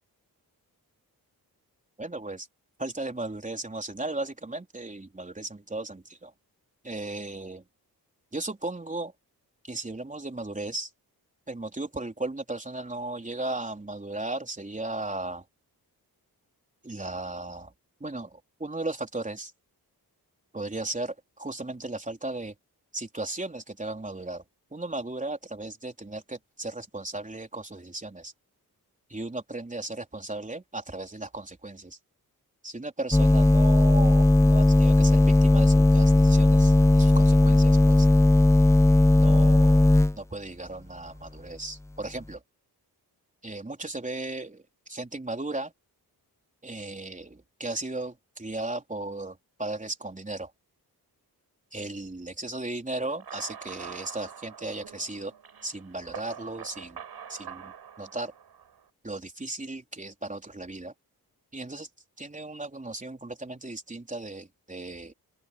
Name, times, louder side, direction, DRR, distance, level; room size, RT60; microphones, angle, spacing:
voice 1, 2.0-2.5 2.8-6.3 6.8-7.6 8.3-9.1 9.6-10.9 11.5-15.4 16.8-17.7 18.0-19.5 20.5-22.5 22.9-24.4 24.7-28.3 29.1-32.0 32.6-38.1 39.2-42.4 43.4-45.7 46.6-50.5 51.7-55.3 55.6-57.0 57.3-58.3 59.0-60.9 61.5-61.9 62.2-65.1, right 2 dB, 20° right, 3.9 m, -36 dB
sound 1, 33.1-40.1, left 2 dB, 10° left, 0.5 m, -18 dB
sound 2, 53.0-58.8, right 7 dB, 75° right, 5.4 m, -45 dB
open air
cardioid pair, 80°, 38 cm